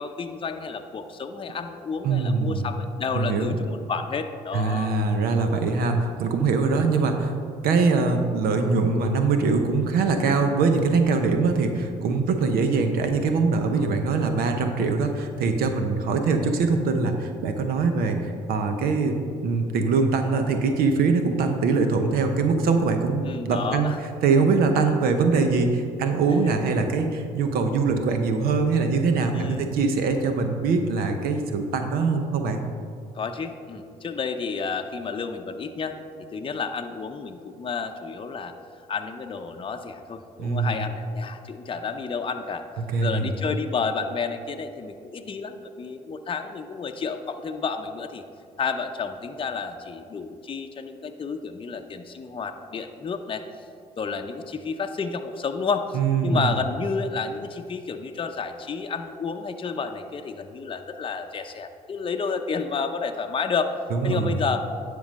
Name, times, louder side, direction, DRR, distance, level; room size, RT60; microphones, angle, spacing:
voice 1, 0.0-4.9 13.8-13.9 23.2-24.0 26.3-26.4 29.3-29.7 33.1-36.0 36.3-38.5 38.9-48.2 48.6-53.4 54.0-63.8 64.0-64.7, left 5 dB, 35° left, 5 dB, 0.7 m, -31 dB
voice 2, 2.0-2.7 3.1-3.5 4.5-7.3 7.6-19.1 19.4-23.9 24.2-32.6 40.4-40.8 42.9-43.4 55.9-56.5 63.9-64.4, right 4 dB, 75° right, 6 dB, 0.8 m, -23 dB
10.0 x 3.8 x 6.3 m, 2.4 s
supercardioid pair, 60°, 16 cm